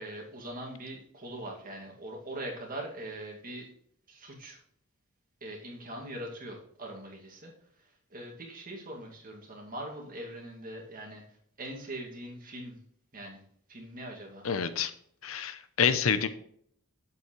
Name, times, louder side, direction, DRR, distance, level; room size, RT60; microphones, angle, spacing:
voice 1, 0.0-3.7 4.1-4.6 5.4-7.5 7.8-11.2 11.6-12.8 13.1-13.4 13.7-14.5, right 1 dB, 40° right, 0 dB, 2.2 m, -42 dB
voice 2, 14.4-14.9 15.2-16.3, left 6 dB, 70° left, 11 dB, 0.7 m, -27 dB
8.3 x 7.8 x 3.2 m, 0.65 s
head